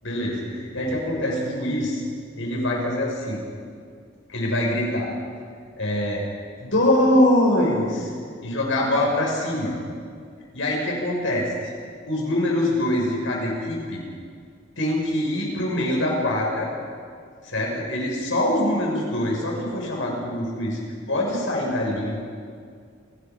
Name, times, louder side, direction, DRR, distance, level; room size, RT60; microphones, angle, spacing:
voice 1, 0.0-2.0 2.3-3.4 4.3-5.1 5.8-6.2 6.6-8.1 8.4-9.7 10.5-11.4 12.1-14.0 14.8-16.7 17.4-20.8 21.1-22.2, left 1 dB, 70° left, -2 dB, 6.3 m, -24 dB
27.5 x 19.0 x 5.4 m, 2.2 s
head